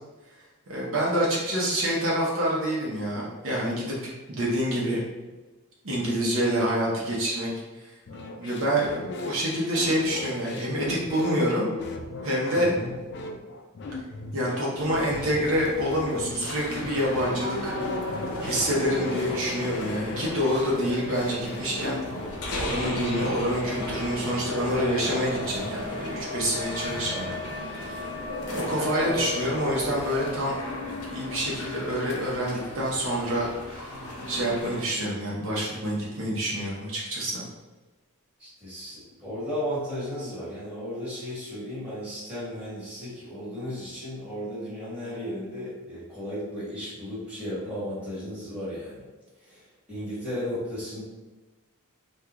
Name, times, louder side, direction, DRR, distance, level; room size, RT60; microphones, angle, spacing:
voice 1, 0.7-5.0 5.8-7.5 8.4-11.7 12.2-12.7 14.3-17.8 18.4-22.0 22.5-27.1 27.7-28.1 28.5-30.5 30.8-34.0 34.3-37.4, equal, 65° right, -4 dB, 0.7 m, -27 dB
sound 1, 8.1-24.0, left 2 dB, 50° left, 0.4 m, -38 dB
voice 2, 12.5-12.9 27.0-27.4 38.4-49.0 49.4-51.0, equal, 5° right, -11 dB, 1.3 m, -35 dB
sound 2, 14.9-34.8, left 1 dB, 85° left, 0.7 m, -34 dB
3.6 x 2.3 x 2.9 m, 1.2 s
head